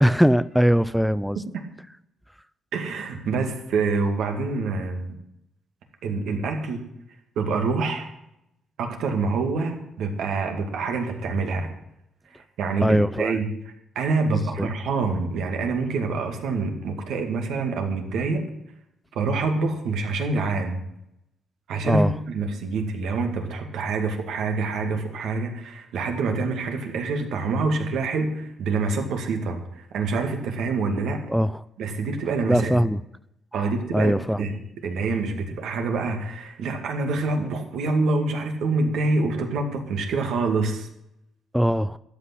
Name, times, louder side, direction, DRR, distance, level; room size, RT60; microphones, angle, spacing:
voice 1, 0.0-1.4 12.8-13.4 14.3-14.7 21.8-22.1 31.3-31.6 32.5-33.0 33.5-34.5 41.5-42.0, equal, ahead, 0.4 m, -21 dB
voice 2, 2.7-5.1 6.0-6.9 7.4-8.1 8.8-11.7 12.3-13.5 14.0-18.4 19.1-20.8 21.7-31.2 31.8-32.9 33.5-34.1 34.4-34.5 34.8-40.9, right 3 dB, 80° right, 2.1 m, -26 dB
13.0 x 6.1 x 9.8 m
cardioid pair, 90°, 0 cm